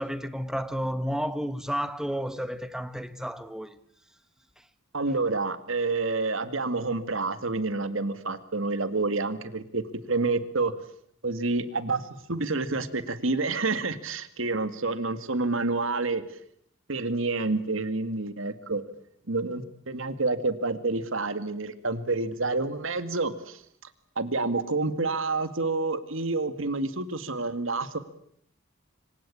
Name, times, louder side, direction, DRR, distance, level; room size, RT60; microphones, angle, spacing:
voice 1, 0.0-3.8, equal, 5° right, 1.3 m, -31 dB
voice 2, 4.9-10.7 11.2-16.2 16.9-18.8 19.3-23.6 24.2-28.0, right 3 dB, 70° right, 2.1 m, -28 dB
26.0 x 25.5 x 8.7 m
head